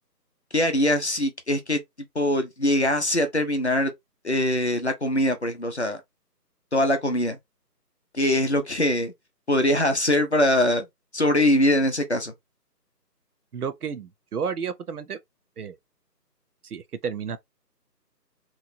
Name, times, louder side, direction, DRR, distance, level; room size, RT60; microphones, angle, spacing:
voice 1, 0.5-1.8 2.1-3.9 4.2-6.0 6.7-7.4 8.1-9.1 9.5-10.9 11.1-12.3, left 1 dB, 45° left, 0.5 m, -22 dB
voice 2, 13.5-15.2 15.6-15.8 16.6-17.4, right 6 dB, 65° right, 0.5 m, -31 dB
3.0 x 2.1 x 2.5 m
figure-of-eight pair, 160°, 50 cm